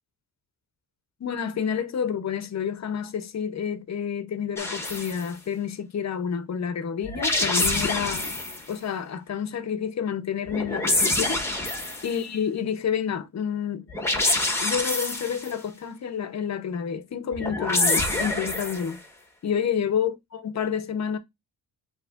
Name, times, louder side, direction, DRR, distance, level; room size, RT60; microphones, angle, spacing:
voice 1, 1.2-8.3 8.7-11.4 12.0-13.8 14.6-19.0 19.4-21.2, left 7 dB, 45° left, 0.7 m, -29 dB
sound 1, 4.6-5.2 7.0-8.6 10.5-12.2 13.9-15.5 17.3-18.9, left 2 dB, 5° left, 1.0 m, -26 dB
7.5 x 2.9 x 2.3 m
wide cardioid pair, 135°, 38 cm